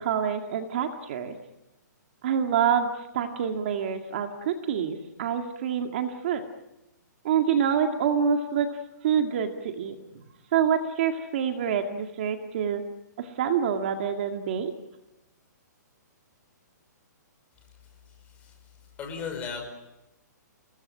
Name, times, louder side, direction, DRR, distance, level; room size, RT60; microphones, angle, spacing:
voice 1, 0.0-1.3 2.2-6.4 7.2-8.7 9.0-10.0 10.5-12.8 13.2-14.7, right 8 dB, 35° right, 5 dB, 2.0 m, -26 dB
voice 2, 19.0-19.7, left 6 dB, 15° left, 3 dB, 5.3 m, -35 dB
29.5 x 20.0 x 9.9 m, 0.96 s
hypercardioid pair, 175°, 10 cm